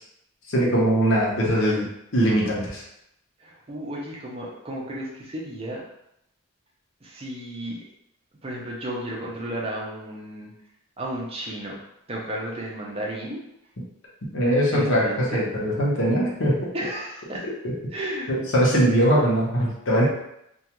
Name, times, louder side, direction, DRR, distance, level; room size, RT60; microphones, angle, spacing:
voice 1, 0.5-1.9 2.1-2.8 14.3-16.7 17.6-17.7 18.3-20.0, equal, 55° left, -5 dB, 0.7 m, -21 dB
voice 2, 3.4-5.8 7.0-7.8 8.4-10.5 11.0-11.8 12.1-13.4 14.7-15.4 16.7-17.5 17.9-18.3, right 1 dB, 25° right, -3 dB, 0.5 m, -33 dB
2.3 x 2.2 x 2.9 m, 0.81 s
head